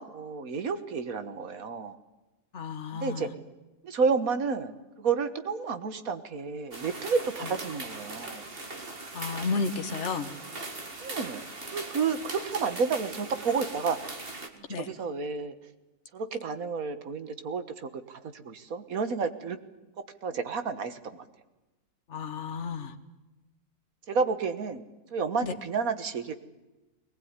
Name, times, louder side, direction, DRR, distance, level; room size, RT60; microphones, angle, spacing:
voice 1, 0.0-2.0 2.9-3.3 3.8-8.4 11.0-11.4 11.7-14.0 14.5-15.6 16.1-19.6 20.2-21.2 24.1-24.8 25.1-26.3, right 5 dB, 65° right, 11 dB, 1.8 m, -31 dB
voice 2, 2.5-3.3 9.1-10.3 14.7-14.9 22.1-23.0 25.4-25.5, left 4 dB, 50° left, 8 dB, 1.7 m, -32 dB
sound 1, 6.7-14.5, right 2 dB, 35° right, 2.2 m, -40 dB
21.5 x 19.0 x 9.7 m, 1.1 s
omnidirectional pair, 1.6 m